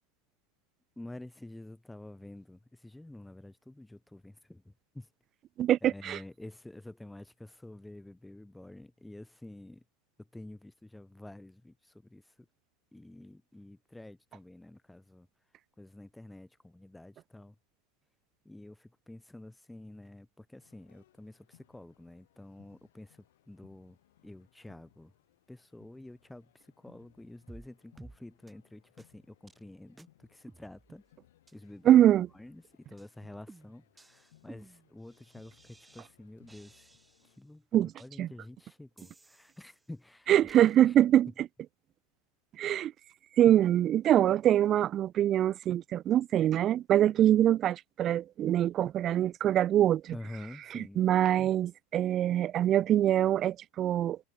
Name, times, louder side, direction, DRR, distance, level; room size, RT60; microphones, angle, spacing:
voice 1, 1.0-5.1 5.8-9.8 10.2-12.5 12.9-15.3 15.8-17.6 18.4-24.0 24.2-25.1 25.5-31.0 31.5-32.0 32.3-36.9 37.2-40.5 40.8-40.9 50.1-51.1, left 1 dB, 5° left, 3.8 m, -49 dB
voice 2, 5.6-6.2 31.9-32.3 37.7-37.9 38.2-38.3 40.3-41.3 42.6-42.9 43.4-50.1 50.7-54.2, right 11 dB, 40° right, 0.3 m, -24 dB
sound 1, 20.6-37.4, left 14 dB, 75° left, 5.0 m, -67 dB
sound 2, 27.5-27.7 28.0-28.2 28.5-28.6 29.0-29.1 29.5-29.6 30.0-30.1 30.5-31.1 31.5-31.6 32.0-32.6 33.0-33.1 33.5-36.1 36.5-37.4 38.0-38.1 39.0-39.9 40.5-40.8, right 3 dB, 10° right, 3.0 m, -55 dB
hypercardioid pair, 95°, 0 cm